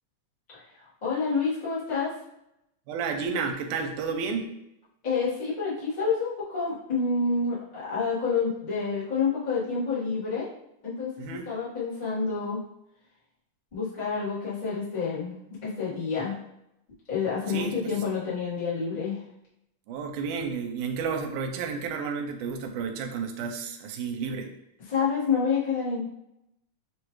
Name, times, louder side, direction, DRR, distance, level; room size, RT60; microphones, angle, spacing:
voice 1, 1.0-2.1 5.0-10.5 10.8-12.6 13.7-15.3 15.6-16.4 17.1-19.2 24.9-26.0, left 5 dB, 60° left, -9 dB, 0.4 m, -28 dB
voice 2, 2.9-4.6 11.2-11.5 17.5-17.9 19.9-24.5, right 5 dB, 80° right, 4 dB, 2.0 m, -31 dB
6.8 x 2.4 x 3.0 m, 0.82 s
omnidirectional pair, 3.7 m